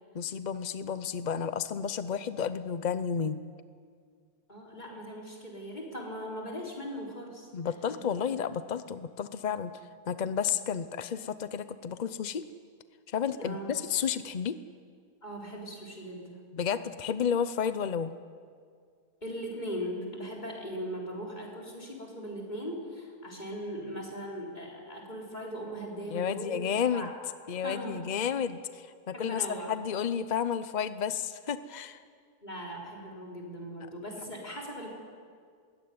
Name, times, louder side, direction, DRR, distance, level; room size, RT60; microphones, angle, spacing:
voice 1, 0.1-3.4 7.5-12.4 13.1-14.6 16.5-18.1 26.1-27.1 27.5-32.0, left 7 dB, 60° left, 12 dB, 0.4 m, -32 dB
voice 2, 4.5-8.4 13.4-13.7 15.2-16.4 19.2-26.6 26.9-27.1 27.6-28.0 29.1-29.7 32.4-34.9, equal, 25° left, -2 dB, 4.6 m, -39 dB
21.5 x 17.0 x 9.6 m, 2.1 s
omnidirectional pair, 1.7 m